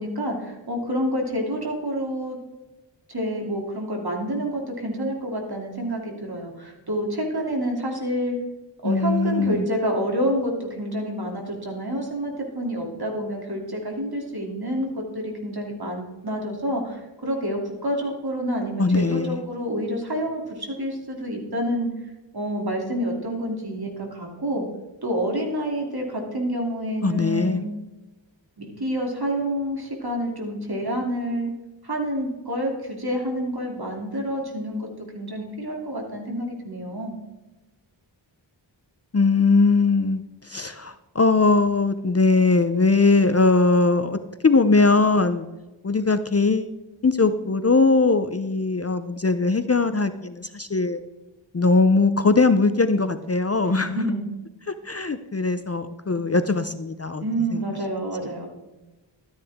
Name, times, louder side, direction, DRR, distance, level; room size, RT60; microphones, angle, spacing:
voice 1, 0.0-2.4 3.1-8.4 8.8-18.8 19.1-21.9 22.3-24.7 25.0-27.7 28.8-31.5 31.8-34.9 35.1-37.1 53.6-54.3 57.1-58.5, equal, 55° right, 0 dB, 3.0 m, -28 dB
voice 2, 8.8-9.7 18.8-19.4 27.0-27.6 39.1-45.5 45.8-46.7 47.0-51.0 51.5-54.0 54.7-57.2 57.5-57.6, left 3 dB, 35° left, 11 dB, 0.6 m, -20 dB
13.0 x 9.8 x 3.6 m, 1.1 s
wide cardioid pair, 45°, 46 cm